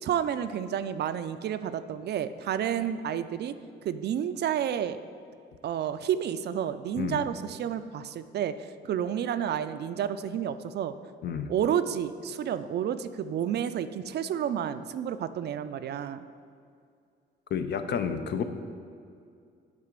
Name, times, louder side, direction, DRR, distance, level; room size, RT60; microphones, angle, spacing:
voice 1, 0.0-3.5 3.8-5.0 5.6-8.5 8.8-10.9 11.5-16.2, right 9 dB, 55° right, 11 dB, 0.4 m, -30 dB
voice 2, 11.2-11.5 17.5-18.4, left 7 dB, 60° left, 9 dB, 0.6 m, -30 dB
8.8 x 3.7 x 5.1 m, 2.4 s
cardioid pair, 90°, 20 cm